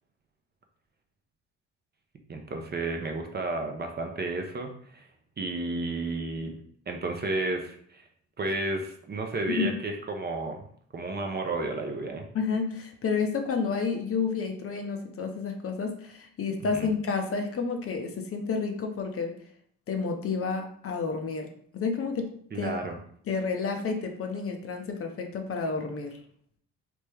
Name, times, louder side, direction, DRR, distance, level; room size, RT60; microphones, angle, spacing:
voice 1, 2.3-5.1 5.4-6.6 6.9-8.1 8.4-10.6 10.9-12.3 16.7-16.9 22.5-23.0, right 2 dB, 30° right, 3 dB, 0.6 m, -32 dB
voice 2, 12.3-19.4 19.9-22.8 23.3-26.2, left 5 dB, 40° left, 4 dB, 0.6 m, -30 dB
3.3 x 2.1 x 3.3 m, 0.62 s
supercardioid pair, 65°, 35 cm